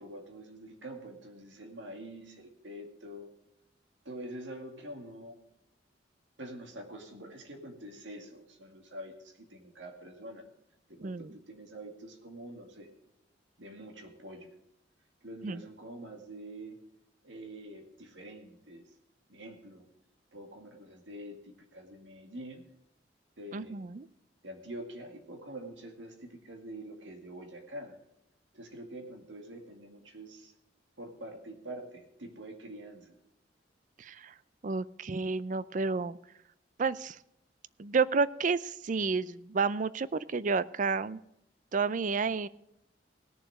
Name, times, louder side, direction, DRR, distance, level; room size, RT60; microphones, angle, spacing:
voice 1, 0.0-3.3 4.0-5.3 6.4-10.5 10.9-12.9 13.6-14.5 15.2-16.8 17.2-18.8 19.3-19.8 20.3-22.6 23.4-23.8 24.4-28.0 28.5-30.5 31.0-33.2, right 1 dB, 90° right, 3 dB, 2.2 m, -46 dB
voice 2, 23.5-24.1 34.0-34.3 34.6-36.2 36.8-37.2 37.8-41.2 41.7-42.5, right 4 dB, 45° right, 17 dB, 0.4 m, -30 dB
17.5 x 7.0 x 4.9 m, 0.82 s
head